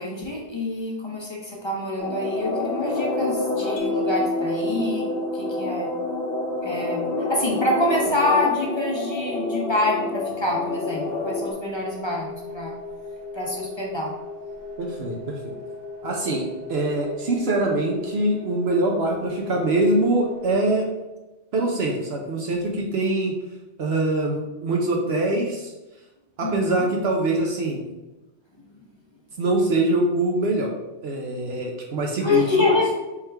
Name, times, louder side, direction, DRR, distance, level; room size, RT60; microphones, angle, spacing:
voice 1, 0.0-5.1 5.3-5.9 6.6-7.0 7.3-12.7 13.3-14.1 26.4-26.9 32.2-32.9, left 2 dB, 30° left, -2 dB, 0.6 m, -26 dB
sound 1, 2.0-11.5, left 2 dB, 55° left, 1.2 m, -28 dB
Mallet percussion, 3.8-7.0, left 2 dB, 80° left, 0.9 m, -30 dB
sound 2, 10.7-20.5, left 3 dB, 90° right, 1.7 m, -38 dB
voice 2, 14.8-15.5 16.0-20.9 21.5-23.3 23.8-25.7 26.4-27.8 29.4-30.7 31.0-32.6, right 2 dB, 65° right, 0 dB, 0.9 m, -23 dB
4.3 x 3.6 x 3.3 m, 1.1 s
omnidirectional pair, 1.2 m